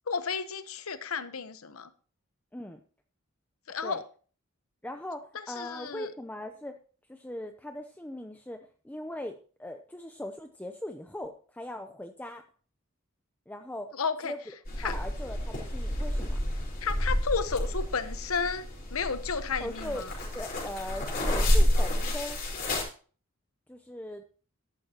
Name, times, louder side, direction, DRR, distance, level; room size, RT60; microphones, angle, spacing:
voice 1, 0.1-1.9 3.7-4.0 5.3-6.1 13.9-14.3 14.8-14.9 16.8-20.1, left 5 dB, 85° left, 1.0 m, -32 dB
voice 2, 4.8-6.7 7.1-12.4 13.5-13.9 14.2-14.4 14.8-16.4 19.6-20.0 20.3-22.4 23.7-24.2, left 1 dB, 10° left, 0.6 m, -40 dB
sound 1, 14.6-22.8, left 1 dB, 45° left, 4.5 m, -29 dB
13.5 x 11.5 x 2.9 m
head